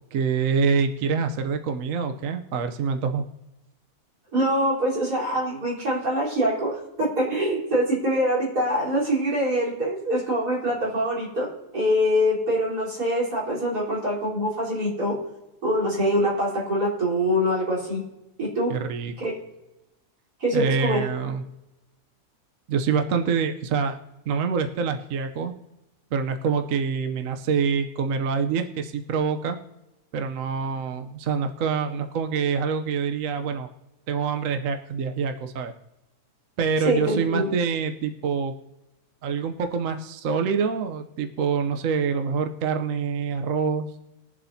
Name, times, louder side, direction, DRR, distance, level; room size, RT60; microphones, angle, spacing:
voice 1, 0.1-3.2 18.7-19.2 20.5-21.4 22.7-24.0 24.3-25.5 26.1-29.6 30.1-33.7 34.1-35.7 36.6-38.5 39.2-43.9, right 6 dB, 60° right, 6 dB, 1.1 m, -26 dB
voice 2, 4.3-11.5 11.7-15.1 15.6-18.0 18.4-18.7 19.2-19.3 20.4-21.0 36.8-37.5, equal, 90° right, -6 dB, 4.5 m, -24 dB
22.0 x 7.6 x 2.7 m, 0.96 s
omnidirectional pair, 1.6 m